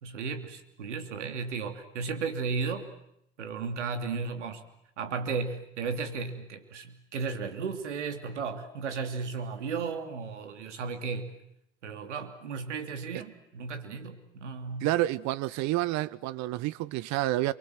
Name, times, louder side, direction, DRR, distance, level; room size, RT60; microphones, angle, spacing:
voice 1, 0.0-2.9 3.4-4.6 5.0-11.4 11.8-14.9, right 5 dB, 80° right, 3.1 m, -34 dB
voice 2, 14.8-17.5, right 16 dB, 50° right, 1.1 m, -29 dB
28.0 x 24.0 x 7.8 m
hypercardioid pair, 80°, 35 cm